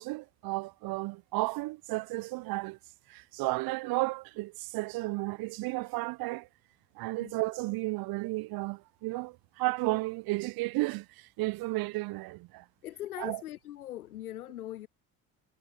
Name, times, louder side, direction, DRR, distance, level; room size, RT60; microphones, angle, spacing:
voice 1, 0.0-2.8 3.1-6.5 7.0-12.6 13.2-13.4, right 22 dB, 55° right, 0.9 m, -33 dB
voice 2, 12.8-14.9, left 13 dB, 80° left, 0.6 m, -41 dB
figure-of-eight pair, 50°, 43 cm